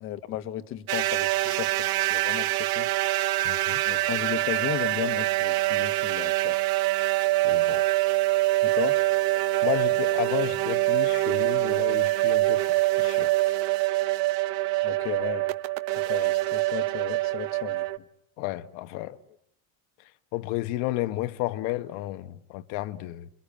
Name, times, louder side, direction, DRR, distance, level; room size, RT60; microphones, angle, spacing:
voice 1, 0.0-1.7 2.1-2.9 3.8-6.6 8.6-9.0 14.8-15.4 16.0-17.8, left 12 dB, 45° left, 1.6 m, -34 dB
sound 1, 0.9-18.0, right 18 dB, 65° right, 1.1 m, -25 dB
voice 2, 3.4-3.8 7.4-7.8 9.4-12.6 13.0-13.6 18.4-19.2 20.3-23.3, left 16 dB, 70° left, 1.4 m, -32 dB
28.5 x 23.5 x 8.8 m
cardioid pair, 175°, 29 cm